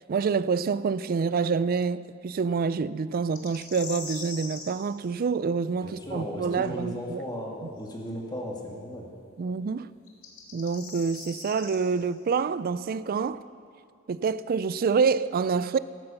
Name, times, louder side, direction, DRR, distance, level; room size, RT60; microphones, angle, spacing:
voice 1, 0.0-7.2 7.6-7.7 9.4-9.9 10.5-13.4 14.1-15.8, right 5 dB, 45° right, 0.3 m, -27 dB
sound 1, 3.3-4.7 7.9-8.0 10.1-11.8, left 4 dB, 85° left, 2.4 m, -40 dB
voice 2, 5.8-9.1, equal, 20° left, 2.0 m, -36 dB
14.5 x 12.0 x 5.7 m
head